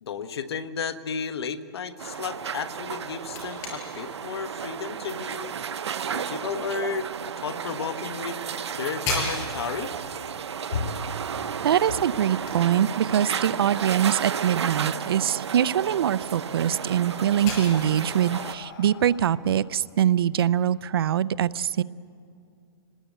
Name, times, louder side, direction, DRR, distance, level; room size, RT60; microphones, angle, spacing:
voice 1, 0.0-5.6 6.1-7.1 7.4-8.4 8.7-9.9 10.7-11.2, left 6 dB, 70° left, 11 dB, 1.3 m, -33 dB
sound 1, 2.0-18.5, right 7 dB, 90° right, 0.9 m, -33 dB
sound 2, 8.9-20.4, left 2 dB, 25° left, 5.4 m, -40 dB
voice 2, 11.6-21.8, right 10 dB, 60° right, 18 dB, 0.6 m, -23 dB
Breathing, 15.9-20.7, left 5 dB, 50° left, 1.9 m, -47 dB
27.0 x 20.0 x 8.1 m, 2.4 s
hypercardioid pair, 165°, 14 cm